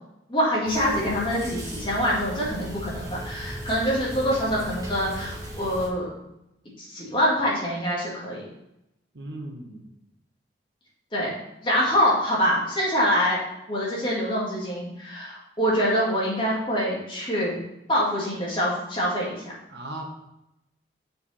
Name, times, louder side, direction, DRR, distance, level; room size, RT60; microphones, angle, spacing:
voice 1, 0.3-6.1 6.8-8.4 11.1-11.3 11.6-13.4 13.7-17.6 17.9-19.4, equal, 25° left, -6 dB, 2.2 m, -25 dB
sound 1, 0.6-5.9, right 1 dB, 20° right, 1.8 m, -37 dB
voice 2, 9.1-9.9 19.7-20.0, right 1 dB, 70° right, 1 dB, 1.2 m, -37 dB
6.8 x 4.8 x 4.3 m, 0.87 s
head